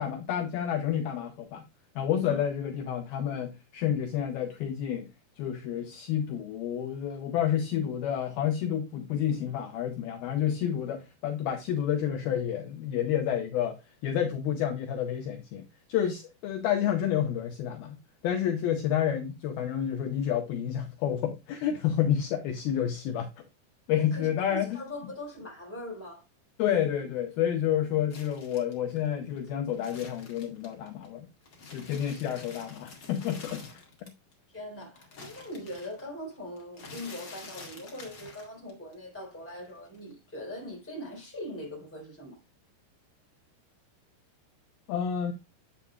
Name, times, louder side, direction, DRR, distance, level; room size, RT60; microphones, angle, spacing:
voice 1, 0.0-1.7 2.0-5.1 5.4-15.6 15.9-23.3 23.9-24.8 26.6-31.3 31.7-33.8 44.9-45.3, left 9 dB, 80° left, 2.3 m, -29 dB
voice 2, 24.0-26.2 34.5-42.4, left 1 dB, 5° left, 2.9 m, -41 dB
sound 1, 28.1-31.1 31.4-34.3 34.6-38.9 39.2-40.1, left 3 dB, 50° left, 1.4 m, -48 dB
8.4 x 7.3 x 2.2 m
omnidirectional pair, 5.2 m